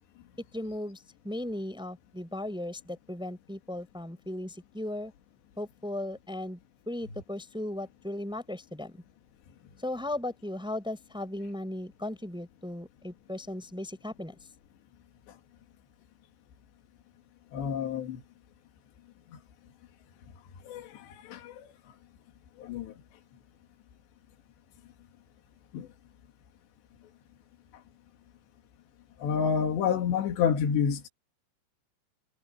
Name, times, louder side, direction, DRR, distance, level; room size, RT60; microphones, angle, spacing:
voice 1, 0.5-5.1 5.6-6.6 6.9-8.9 9.8-14.3, left 1 dB, ahead, 6.2 m, -36 dB
voice 2, 17.5-18.2 20.7-20.8 21.3-21.4 22.6-22.9 25.7-25.9 29.2-31.1, left 7 dB, 75° left, 4.4 m, -28 dB
omnidirectional pair, 5.1 m